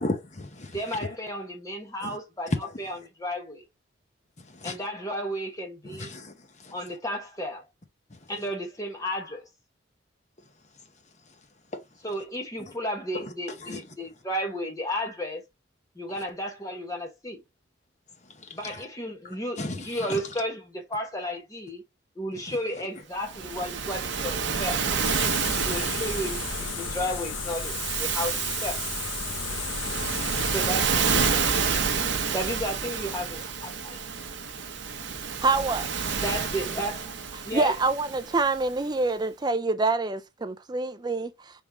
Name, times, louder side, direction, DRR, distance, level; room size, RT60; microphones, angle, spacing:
voice 1, 0.0-1.2 2.0-2.2 2.5-2.8 4.4-4.8 5.8-6.7 8.1-8.4 11.3-11.4 11.7-11.8 12.7-12.8 13.1-14.1 18.2-18.9 19.2-20.3 22.5-22.9, left 2 dB, 35° left, 0.9 m, -36 dB
voice 2, 0.7-2.5 2.8-3.6 4.6-6.1 6.7-7.6 8.3-9.5 12.0-15.4 15.9-17.4 18.5-21.8 22.2-24.8 25.6-26.4 26.8-28.3 28.6-28.8 30.5-31.5 32.3-34.0 36.2-37.1 37.5-37.7, equal, 15° left, 1.3 m, -33 dB
Waves surf, 23.2-38.7, right 6 dB, 60° right, 0.8 m, -29 dB
sound 1, 25.0-30.7, left 6 dB, 70° left, 0.7 m, -34 dB
voice 3, 35.4-35.9 37.5-41.3, right 3 dB, 20° right, 0.4 m, -26 dB
5.0 x 3.7 x 2.9 m
head